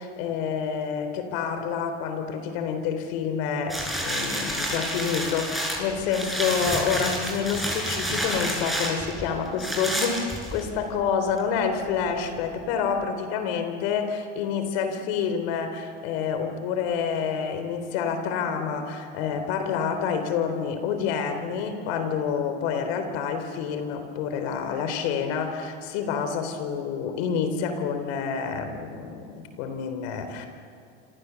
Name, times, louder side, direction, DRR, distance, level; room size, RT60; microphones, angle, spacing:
voice 1, 0.0-30.5, left 6 dB, 75° left, 7 dB, 3.6 m, -28 dB
sound 1, 3.7-10.8 11.4-11.5, equal, ahead, 7.9 m, -29 dB
27.0 x 26.5 x 7.0 m, 2.5 s
hypercardioid pair, 90°, 31 cm